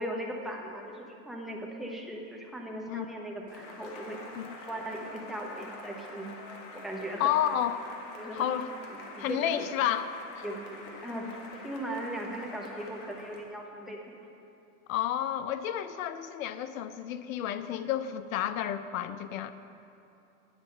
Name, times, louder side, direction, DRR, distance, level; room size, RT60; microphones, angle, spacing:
voice 1, 0.0-4.2 4.7-6.3 6.7-7.3 8.2-8.5 8.9-9.7 10.4-11.3 11.6-14.2, right 1 dB, ahead, -1 dB, 0.9 m, -38 dB
Cheering / Applause, 3.5-13.5, left 2 dB, 50° left, 1.6 m, -46 dB
voice 2, 7.2-7.9 8.3-8.7 9.2-10.4 14.9-19.5, left 10 dB, 75° left, 12 dB, 0.7 m, -31 dB
9.6 x 5.4 x 6.6 m, 2.8 s
supercardioid pair, 130°, 41 cm